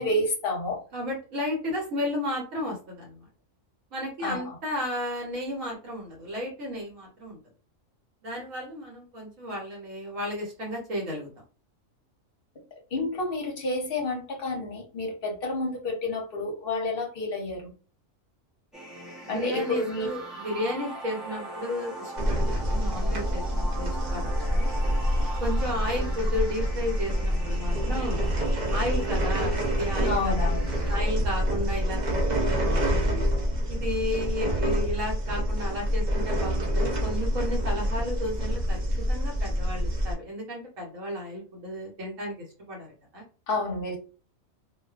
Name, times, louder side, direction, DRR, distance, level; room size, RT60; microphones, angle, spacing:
voice 1, 0.0-0.8 4.2-4.4 12.9-17.7 19.3-20.1 30.0-30.7 43.5-44.0, left 2 dB, 50° left, 0 dB, 0.8 m, -29 dB
voice 2, 0.9-3.2 3.9-7.4 8.2-11.3 19.3-24.7 25.4-28.2 28.7-30.5 30.9-33.3 33.7-38.8 39.1-43.2, left 1 dB, 75° right, -2 dB, 1.2 m, -33 dB
sound 1, 18.7-31.0, right 1 dB, ahead, 0.5 m, -41 dB
sound 2, 22.2-40.1, equal, 50° right, 0.5 m, -27 dB
2.4 x 2.3 x 2.3 m, 0.35 s
omnidirectional pair, 1.4 m